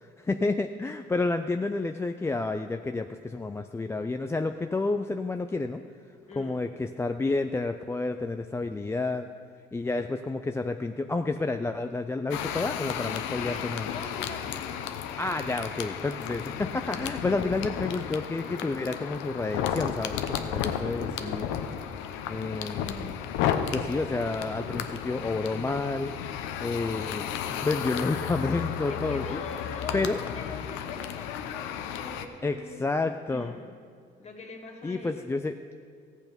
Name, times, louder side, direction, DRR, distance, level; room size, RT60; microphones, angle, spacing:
voice 1, 0.0-5.8 6.4-9.3 9.7-13.9 15.2-21.5 22.3-23.2 23.7-26.1 26.6-27.3 27.6-29.4 29.9-30.2 32.4-33.5 34.8-35.5, left 3 dB, 15° left, 7 dB, 0.4 m, -30 dB
voice 2, 6.3-6.7 13.4-14.8 17.1-17.7 21.2-21.7 28.9-33.7 34.2-35.3, left 3 dB, 35° left, 1 dB, 2.0 m, -43 dB
sound 1, 12.3-32.3, left 9 dB, 90° left, 0.7 m, -33 dB
14.5 x 8.2 x 5.2 m, 2.1 s
cardioid pair, 95°, 19 cm